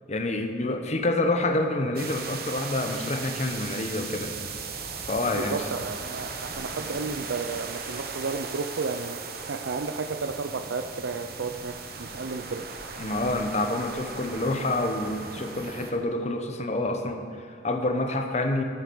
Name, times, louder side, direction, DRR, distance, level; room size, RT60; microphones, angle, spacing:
voice 1, 0.1-4.4 5.1-5.6 13.0-18.6, left 2 dB, 35° left, 5 dB, 0.9 m, -27 dB
sound 1, 2.0-15.9, right 5 dB, 55° right, 1.2 m, -37 dB
voice 2, 5.3-9.2 9.5-12.6, right 4 dB, 85° right, 7 dB, 0.6 m, -33 dB
13.0 x 8.4 x 6.2 m, 2.2 s
head